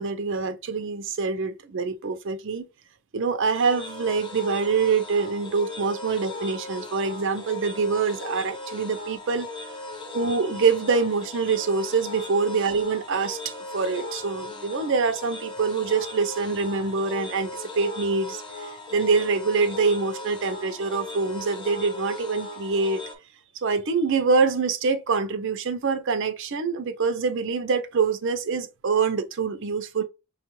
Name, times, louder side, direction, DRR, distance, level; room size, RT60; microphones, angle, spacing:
voice 1, 0.0-2.7 3.1-9.5 10.1-23.0 23.5-30.0, right 4 dB, 60° right, 0.5 m, -25 dB
sound 1, 3.5-23.1, left 2 dB, 20° left, 0.7 m, -38 dB
5.2 x 2.3 x 3.0 m
head